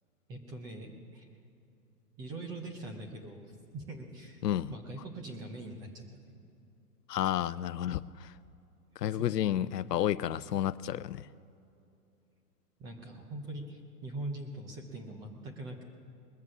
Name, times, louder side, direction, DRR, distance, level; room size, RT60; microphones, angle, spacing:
voice 1, 0.3-1.3 2.2-4.4 4.7-6.4 9.1-9.7 12.8-15.8, right 2 dB, 10° right, 3 dB, 0.4 m, -43 dB
voice 2, 7.1-8.3 9.0-11.2, left 11 dB, 90° left, 17 dB, 0.6 m, -31 dB
21.0 x 7.3 x 6.0 m, 2.7 s
hypercardioid pair, 135°, 47 cm